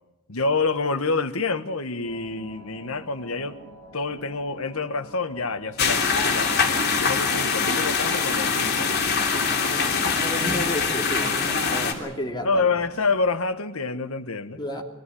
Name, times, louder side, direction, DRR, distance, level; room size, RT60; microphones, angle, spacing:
voice 1, 0.3-3.6 3.9-8.9 12.4-14.6, left 4 dB, 85° left, 11 dB, 1.4 m, -27 dB
sound 1, 2.0-13.4, right 1 dB, 65° right, 7.1 m, -47 dB
sound 2, 5.8-11.9, left 5 dB, 50° left, 3.2 m, -23 dB
voice 2, 9.3-12.6 14.6-14.8, equal, 20° left, 2 dB, 2.9 m, -32 dB
24.0 x 16.0 x 10.0 m, 0.99 s
head